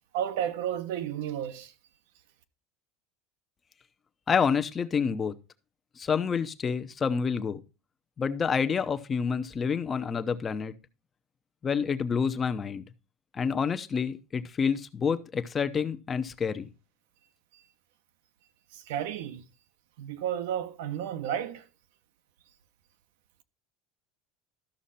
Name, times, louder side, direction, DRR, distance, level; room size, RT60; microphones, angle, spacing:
voice 1, 0.1-1.7 18.7-19.4 20.0-21.7, right 10 dB, 85° right, 1.1 m, -32 dB
voice 2, 4.3-5.3 6.0-7.6 8.2-10.7 11.6-12.8 13.3-16.7, left 6 dB, 20° left, 0.8 m, -28 dB
13.0 x 6.4 x 4.2 m
cardioid pair, 150°, 0 cm